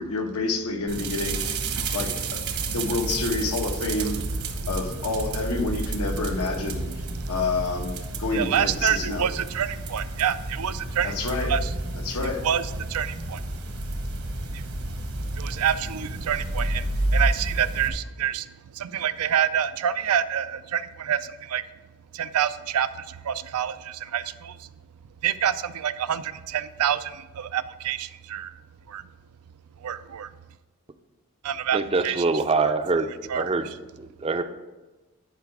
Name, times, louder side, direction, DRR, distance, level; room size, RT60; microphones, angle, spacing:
voice 1, 0.0-1.6 1.9-4.2 4.7-6.9 7.3-9.3 11.0-11.5 12.0-12.5, left 3 dB, 85° left, 4 dB, 1.1 m, -28 dB
sound 1, 0.9-17.9, right 2 dB, 70° right, 1.1 m, -30 dB
voice 2, 8.3-11.2 11.5-11.7 12.4-13.4 15.3-21.7 22.1-24.7 25.2-28.6 28.9-29.0 29.8-30.3 31.4-32.2 32.6-32.7 33.3-33.4, right 9 dB, 85° right, 14 dB, 0.4 m, -27 dB
voice 3, 31.7-33.1 33.3-33.7 33.9-34.4, right 3 dB, 25° right, 9 dB, 0.4 m, -24 dB
10.5 x 4.9 x 4.8 m, 1.2 s
head